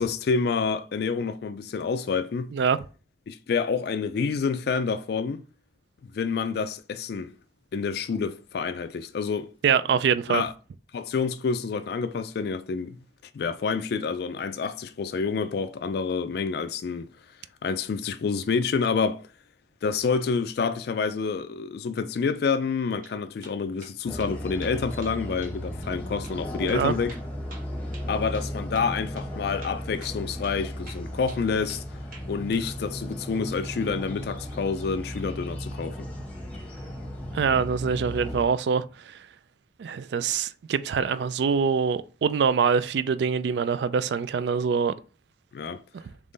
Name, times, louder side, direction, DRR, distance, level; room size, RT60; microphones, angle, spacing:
voice 1, 0.0-2.5 3.3-5.4 6.1-7.3 7.7-9.5 10.3-10.5 10.9-13.0 13.3-17.1 17.6-19.2 19.8-27.1 28.1-31.8 32.3-36.1 45.5-45.8, left 5 dB, 60° left, 0.3 m, -28 dB
voice 2, 9.6-10.4 26.6-26.9 37.3-39.1 39.8-44.9 45.9-46.0, right 6 dB, 65° right, 0.3 m, -24 dB
sound 1, 22.8-23.2 23.4-23.9 24.2-24.3 24.6-25.2 25.4-25.6 25.8-25.9 26.2-26.4 26.7-28.5 28.7-28.9 29.2-29.3 29.6-30.2 30.4-30.6 30.9-31.8 32.1-32.7, right 3 dB, 45° right, 1.2 m, -48 dB
sound 2, 24.1-38.4, equal, 10° left, 0.9 m, -35 dB
3.6 x 3.1 x 3.8 m
head